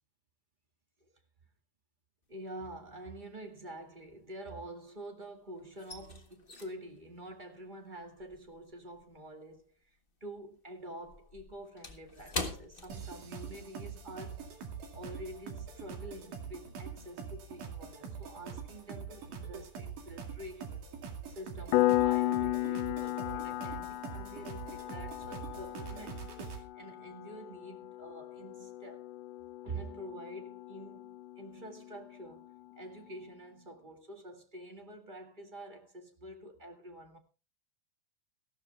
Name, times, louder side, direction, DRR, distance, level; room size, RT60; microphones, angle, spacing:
sound 1, 2.3-2.9 3.1-5.1 5.4-10.1 10.4-13.7 14.0-14.2 14.7-14.9, left 3 dB, 35° left, 0.8 m, -44 dB
voice 1, 2.3-14.5 14.9-20.9 21.3-29.1 29.6-37.2, right 1 dB, 20° right, 1.5 m, -47 dB
sound 2, 12.9-26.6, right 6 dB, 75° right, 3.8 m, -44 dB
Piano, 21.7-32.1, left 16 dB, 85° left, 2.4 m, -35 dB
15.5 x 13.0 x 3.4 m
omnidirectional pair, 3.7 m